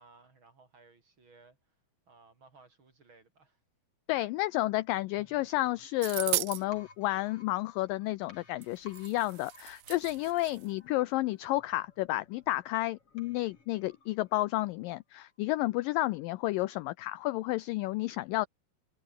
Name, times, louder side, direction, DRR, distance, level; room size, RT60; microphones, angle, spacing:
voice 1, 0.0-1.8 2.1-3.6, right 3 dB, 30° right, 3.8 m, -60 dB
voice 2, 4.1-18.5, left 18 dB, 85° left, 2.0 m, -31 dB
sound 1, 5.2-14.9 15.2-15.3, left 4 dB, 35° left, 5.2 m, -58 dB
sound 2, 6.0-6.6 8.6-8.7 8.9-10.7, right 21 dB, 80° right, 2.2 m, -36 dB
omnidirectional pair, 4.6 m